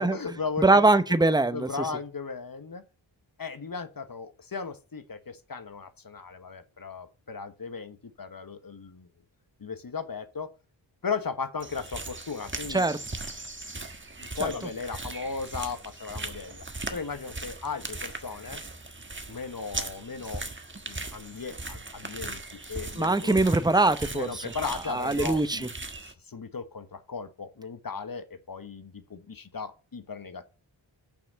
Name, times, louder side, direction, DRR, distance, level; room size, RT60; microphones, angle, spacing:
voice 1, 0.0-0.9 1.3-2.8 3.4-9.1 9.6-10.5 11.0-12.9 14.2-16.6 16.9-18.6 19.3-20.4 20.8-23.4 24.1-25.7 26.0-30.4, left 5 dB, 45° left, 1.4 m, -36 dB
voice 2, 0.6-1.9 12.7-13.0 14.4-14.5 23.0-24.3 24.9-25.6, right 2 dB, 10° right, 0.9 m, -22 dB
sound 1, 11.6-26.1, right 2 dB, 25° right, 1.5 m, -39 dB
7.0 x 5.8 x 6.5 m
cardioid pair, 55°, 47 cm